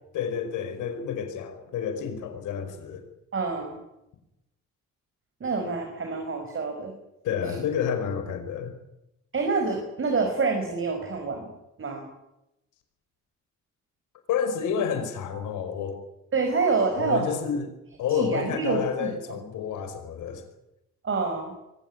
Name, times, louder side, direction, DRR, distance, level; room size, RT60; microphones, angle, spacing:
voice 1, 0.1-3.0 7.2-8.8 14.3-16.0 17.0-20.4, left 7 dB, 85° left, 5.2 m, -30 dB
voice 2, 3.3-3.8 5.4-6.9 7.4-7.6 9.3-11.5 11.8-12.1 16.3-17.3 18.1-19.1 21.0-21.5, right 4 dB, 45° right, 5.6 m, -27 dB
24.0 x 16.0 x 9.8 m
cardioid pair, 90°, 30 cm